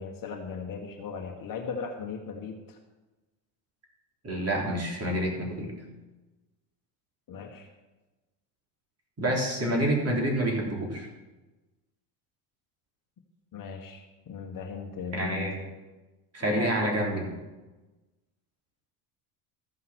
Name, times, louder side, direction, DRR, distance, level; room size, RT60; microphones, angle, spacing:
voice 1, 0.0-2.8 7.3-7.7 13.5-15.6 16.4-16.9, left 6 dB, 40° left, 3 dB, 1.5 m, -38 dB
voice 2, 4.2-5.7 9.2-11.1 15.1-15.6 16.3-17.2, right 1 dB, 30° right, -1 dB, 3.4 m, -28 dB
14.0 x 5.7 x 6.2 m, 1.2 s
supercardioid pair, 90°, 50 cm